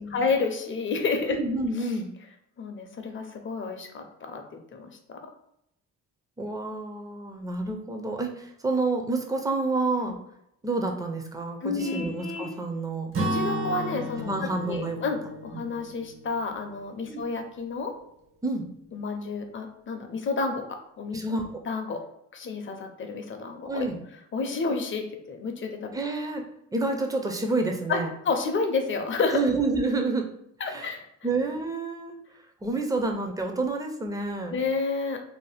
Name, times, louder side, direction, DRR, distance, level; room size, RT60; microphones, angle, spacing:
voice 1, 0.0-1.4 1.8-1.9 2.6-4.4 4.7-4.9 10.1-10.2 11.6-12.1 13.3-17.9 18.9-20.6 21.0-21.2 21.7-22.0 22.3-23.9 24.3-26.0 27.9-29.4 30.6-31.0 34.5-35.2, left 4 dB, 40° left, 5 dB, 0.6 m, -30 dB
voice 2, 1.3-2.1 6.4-10.2 10.6-13.1 14.2-15.0 15.5-15.6 17.1-17.2 18.4-18.6 21.1-21.4 23.6-24.0 25.9-26.4 26.7-28.1 29.3-30.3 30.6-30.9 31.2-32.1 32.6-34.6, right 3 dB, 10° right, 3 dB, 0.5 m, -29 dB
Vehicle horn car horn honking, 11.8-12.6, left 3 dB, 65° right, 1.1 m, -36 dB
Acoustic guitar / Strum, 13.1-17.1, right 1 dB, 45° right, 0.7 m, -33 dB
2.7 x 2.1 x 3.3 m, 0.77 s
cardioid pair, 90°, 30 cm